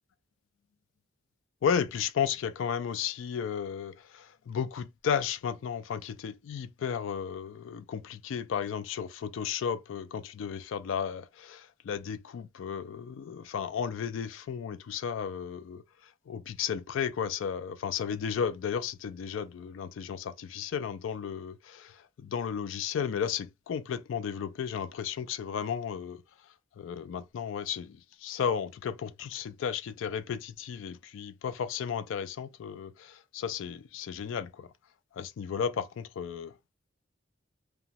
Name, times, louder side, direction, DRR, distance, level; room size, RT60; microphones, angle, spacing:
voice 1, 1.6-15.8 16.3-26.2 26.8-34.7 35.1-36.5, left 7 dB, 65° left, 0.3 m, -34 dB
2.9 x 2.2 x 2.7 m
head